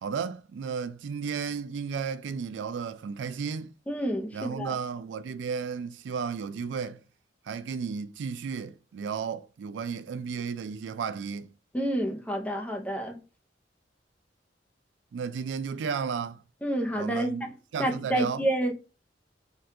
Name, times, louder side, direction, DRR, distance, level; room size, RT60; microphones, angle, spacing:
voice 1, 0.0-3.7 4.3-7.0 7.5-11.5 15.1-16.4 16.9-17.5 17.7-18.4, right 6 dB, 85° right, 0.3 m, -33 dB
voice 2, 3.9-4.8 11.7-13.2 16.6-17.5 17.8-18.7, right 1 dB, 10° left, 0.5 m, -29 dB
3.6 x 2.3 x 2.7 m
head